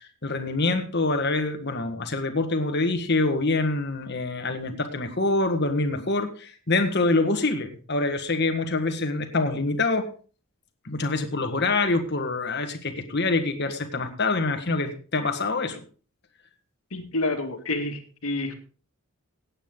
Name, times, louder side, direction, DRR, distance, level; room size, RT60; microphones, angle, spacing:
voice 1, 0.2-10.1 10.8-15.8, left 3 dB, 50° left, 6 dB, 1.6 m, -25 dB
voice 2, 16.9-18.5, left 2 dB, 85° left, 5 dB, 2.1 m, -28 dB
16.0 x 8.8 x 3.8 m, 0.39 s
head